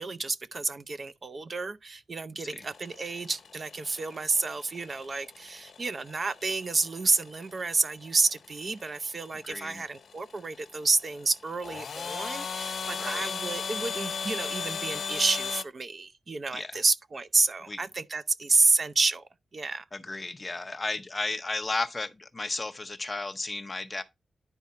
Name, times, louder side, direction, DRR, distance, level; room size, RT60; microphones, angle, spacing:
voice 1, 0.0-19.8, right 3 dB, 35° right, 0.5 m, -29 dB
sound 1, 2.6-15.6, left 6 dB, 60° left, 1.2 m, -38 dB
voice 2, 9.4-9.8 13.0-13.3 16.5-16.8 17.7-17.8 19.9-24.0, left 3 dB, 20° left, 0.8 m, -34 dB
10.5 x 4.7 x 4.1 m
wide cardioid pair, 160°, 0 cm